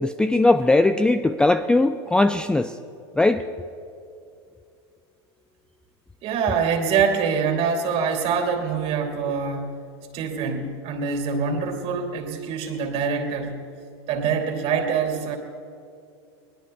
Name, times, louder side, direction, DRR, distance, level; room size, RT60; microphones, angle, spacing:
voice 1, 0.0-2.7 3.2-3.4, left 2 dB, 5° left, 10 dB, 0.3 m, -19 dB
voice 2, 6.2-9.9 10.1-13.6 14.1-15.4, right 6 dB, 45° right, 3 dB, 2.6 m, -25 dB
22.5 x 19.5 x 2.3 m, 2.5 s
hypercardioid pair, 100°, 14 cm